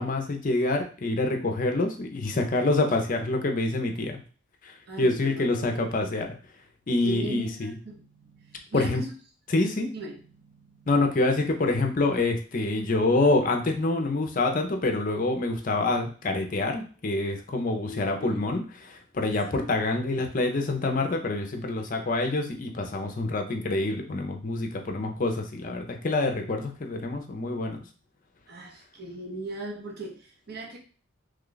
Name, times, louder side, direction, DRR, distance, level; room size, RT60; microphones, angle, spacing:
voice 1, 0.0-4.2 4.6-6.4 6.9-7.7 8.7-9.0 9.5-9.9 10.9-18.6 18.9-27.8, left 2 dB, 40° left, 3 dB, 0.5 m, -26 dB
voice 2, 4.9-5.8 7.0-9.1 9.9-10.9 17.8-18.4 19.5-19.7 28.5-30.8, right 2 dB, 50° right, -1 dB, 0.8 m, -39 dB
3.1 x 2.3 x 3.8 m, 0.39 s
head